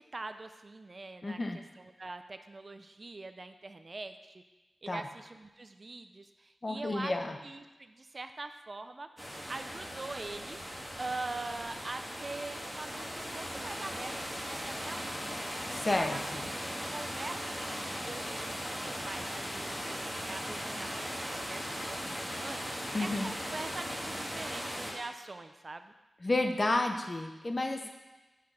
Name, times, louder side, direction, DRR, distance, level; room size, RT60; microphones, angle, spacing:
voice 1, 0.0-4.4 4.8-7.1 7.4-9.1 9.5-10.6 11.0-15.2 15.8-16.5 16.9-25.9 27.8-27.9, right 3 dB, 40° right, 9 dB, 0.4 m, -43 dB
voice 2, 1.2-1.6 4.9-5.0 6.6-7.4 15.7-16.4 22.9-23.3 26.2-27.9, left 2 dB, 35° left, 5 dB, 0.8 m, -31 dB
sound 1, 9.2-24.9, equal, 5° left, 1.8 m, -38 dB
6.5 x 5.8 x 6.3 m, 1.1 s
wide cardioid pair, 85°, 0 cm